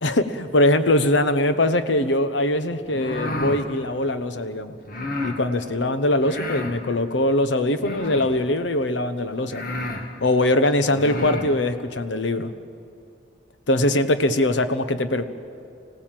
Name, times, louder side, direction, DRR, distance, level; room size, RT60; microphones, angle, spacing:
voice 1, 0.0-4.8 5.2-9.6 10.2-12.5 13.7-15.2, left 1 dB, 80° left, 10 dB, 1.0 m, -22 dB
sound 1, 2.9-3.6 4.9-5.4 6.2-6.8 7.8-8.4 9.1-9.2 9.5-10.0 10.8-11.5, left 1 dB, 50° left, 1.8 m, -30 dB
25.5 x 17.0 x 7.6 m, 2.5 s
head